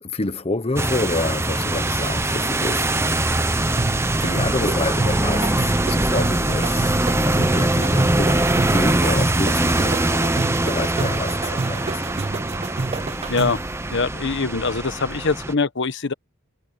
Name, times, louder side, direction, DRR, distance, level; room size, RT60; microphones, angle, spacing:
voice 1, 0.0-3.3 4.1-8.4 8.7-12.0, left 2 dB, 25° left, 0.9 m, -28 dB
sound 1, 0.8-15.5, right 2 dB, 10° right, 0.8 m, -22 dB
Human voice / Acoustic guitar, 1.1-9.1, right 5 dB, 45° right, 4.5 m, -50 dB
sound 2, 3.8-13.7, right 3 dB, 30° right, 0.4 m, -29 dB
voice 2, 13.3-13.6 13.9-16.1, left 4 dB, 55° left, 1.2 m, -23 dB
head